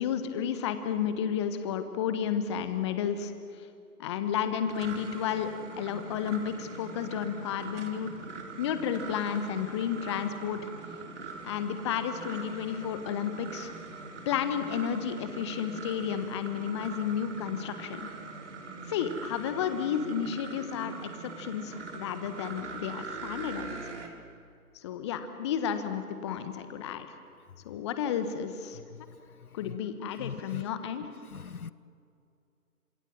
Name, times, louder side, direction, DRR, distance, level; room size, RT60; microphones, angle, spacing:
voice 1, 0.0-3.3 4.0-5.5 5.8-8.1 8.6-10.6 11.4-13.7 14.2-18.1 18.9-23.8 24.7-27.2 27.6-28.8 29.5-31.1, left 8 dB, 20° left, 1.3 m, -32 dB
sound 1, 4.4-24.1, right 4 dB, 50° right, 4.1 m, -42 dB
voice 2, 29.3-29.8 30.2-30.6 31.3-31.7, left 6 dB, 70° left, 1.0 m, -41 dB
28.5 x 27.0 x 7.4 m
figure-of-eight pair, 145°, 46 cm